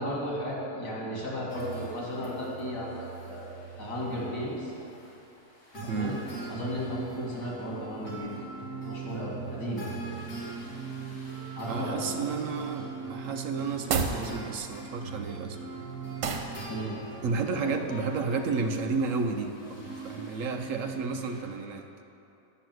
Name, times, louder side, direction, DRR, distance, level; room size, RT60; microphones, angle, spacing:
voice 1, 0.0-3.4 3.8-4.7 5.8-6.2 6.5-8.4 8.9-9.9 11.5-12.3 16.7-17.0 17.4-17.8, equal, 75° left, -5 dB, 3.2 m, -35 dB
sound 1, 1.5-21.4, right 5 dB, 45° left, 3.0 m, -41 dB
voice 2, 5.9-6.2 11.7-15.6 17.2-21.8, right 4 dB, 60° right, 5 dB, 1.0 m, -32 dB
sound 2, 13.8-14.2 16.2-16.5, right 5 dB, 85° right, 1.5 m, -28 dB
10.5 x 6.2 x 7.9 m, 2.8 s
omnidirectional pair, 1.8 m